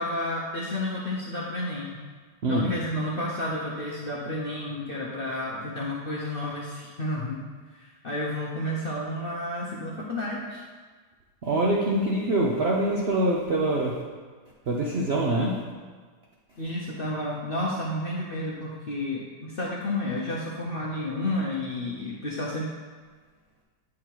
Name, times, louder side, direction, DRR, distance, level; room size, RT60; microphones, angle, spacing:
voice 1, 0.0-2.0 2.5-7.5 7.7-10.6 16.6-22.7, left 1 dB, 50° left, -4 dB, 0.7 m, -31 dB
voice 2, 2.4-2.7 11.4-14.0 14.7-15.6, right 1 dB, 60° right, -3 dB, 0.6 m, -24 dB
8.4 x 3.8 x 4.5 m, 1.5 s
omnidirectional pair, 1.9 m